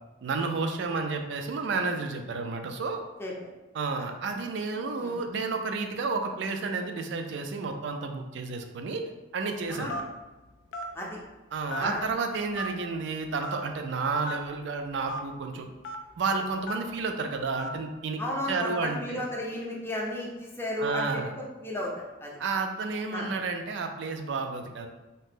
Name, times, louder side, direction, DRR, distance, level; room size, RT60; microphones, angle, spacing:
voice 1, 0.2-3.0 3.7-9.9 11.5-15.7 16.2-18.2 18.5-19.2 20.8-21.3 22.4-24.9, right 4 dB, 65° right, 5 dB, 0.3 m, -31 dB
voice 2, 9.7-10.0 10.9-11.2 11.8-12.0 18.2-22.4 23.1-23.3, left 1 dB, 15° left, -3 dB, 0.5 m, -34 dB
Telephone, 9.9-10.2 10.7-10.9 11.7-12.1 12.6-12.7 13.4-13.6 14.2-14.4 15.1-15.2 15.8-16.0 16.7-16.9 17.6-17.8, left 1 dB, 70° left, 0.3 m, -35 dB
2.7 x 2.0 x 3.4 m, 1.1 s
head